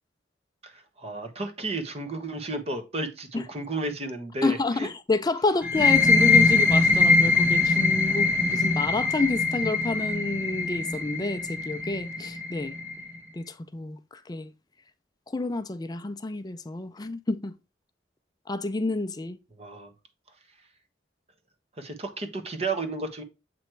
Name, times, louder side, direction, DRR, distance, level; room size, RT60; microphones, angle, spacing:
voice 1, 0.6-4.9 19.6-19.9 21.8-23.2, right 2 dB, 35° right, 1.1 m, -33 dB
voice 2, 4.4-12.8 13.3-14.5 15.3-17.5 18.5-19.4, left 2 dB, 20° left, 0.4 m, -29 dB
sound 1, 5.6-13.1, left 3 dB, 10° right, 1.2 m, -22 dB
7.7 x 3.1 x 4.5 m
head